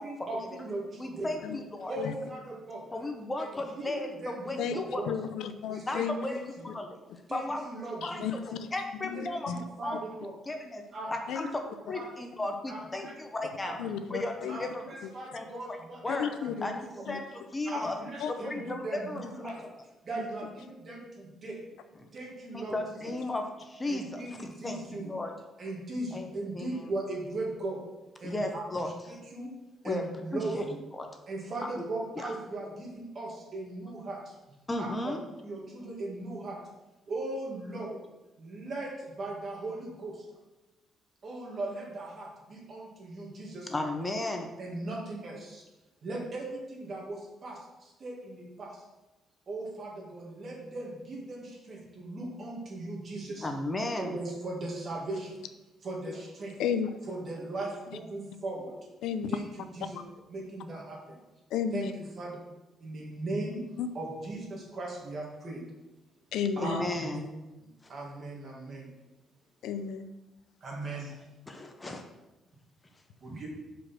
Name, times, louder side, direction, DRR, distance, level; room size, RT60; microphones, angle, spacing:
voice 1, 0.0-1.3 1.9-3.0 3.4-5.1 5.7-6.7 7.3-8.3 9.1-10.4 10.9-11.1 11.4-11.5 11.9-12.1 12.7-13.1 13.6-13.9 14.5-16.8 17.7-19.6 20.0-21.6 22.1-23.0 23.9-25.1 25.6-27.8 28.2-29.5 29.8-30.8 31.3-34.3 34.8-35.2 35.4-36.6 37.1-38.0 38.4-40.3 41.2-43.9 44.6-45.6 46.0-48.8 49.5-53.5 54.0-55.4 55.8-56.6 57.1-58.8 59.3-60.0 60.3-61.2 61.7-62.4 62.8-63.6 63.9-65.6 66.6-67.2 67.9-68.9 70.6-71.2 73.2-73.5, right 2 dB, 40° right, -2 dB, 2.1 m, -38 dB
voice 2, 1.0-2.0 2.9-5.0 5.9-6.3 6.7-7.0 7.3-7.7 8.0-8.2 8.7-9.5 9.8-10.0 10.5-10.8 11.3-11.5 11.9-13.8 14.1-14.8 15.3-15.5 16.0-16.3 16.6-16.7 17.1-17.9 18.3-19.5 22.5-24.2 24.6-25.3 26.1-26.3 26.5-26.9 28.2-29.2 29.8-30.0 30.3-30.6 31.0-31.1 32.2-32.3 34.7-35.2 43.7-44.5 53.4-54.1 66.6-67.2 67.8-67.9 71.5-72.0, left 2 dB, 15° left, 4 dB, 0.8 m, -35 dB
voice 3, 5.1-6.2 8.0-8.6 8.9-9.6 11.3-11.5 13.8-14.6 16.1-16.7 17.1-17.2 18.2-18.3 20.1-20.2 23.1-23.2 56.1-56.2 56.6-56.9 59.0-59.3 61.5-61.9 63.8-63.9 66.3-66.8 69.6-70.1, left 7 dB, 90° left, 10 dB, 0.5 m, -33 dB
6.2 x 5.1 x 5.9 m, 1.1 s
cardioid pair, 135°, 0 cm